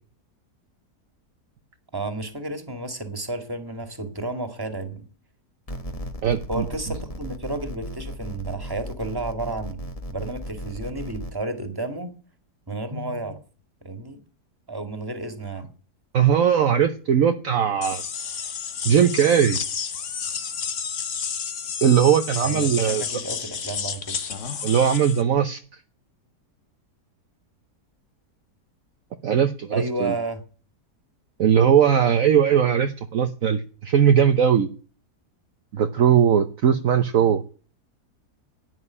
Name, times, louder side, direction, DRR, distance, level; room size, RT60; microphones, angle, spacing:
voice 1, 1.9-5.0 6.5-12.1 12.7-13.4 13.8-14.2 14.7-15.7 22.4-24.0 29.7-30.4, right 2 dB, 15° right, 8 dB, 2.2 m, -31 dB
sound 1, 5.7-11.3, equal, 25° left, 1.3 m, -35 dB
voice 2, 6.2-6.7 16.1-18.0 18.8-19.6 21.8-23.0 24.6-25.6 29.2-30.1 31.4-34.7 35.7-37.4, right 8 dB, 60° right, 7 dB, 1.2 m, -19 dB
sound 2, 17.8-25.2, left 7 dB, 50° left, 1.4 m, -31 dB
11.0 x 9.3 x 9.9 m, 0.40 s
omnidirectional pair, 1.7 m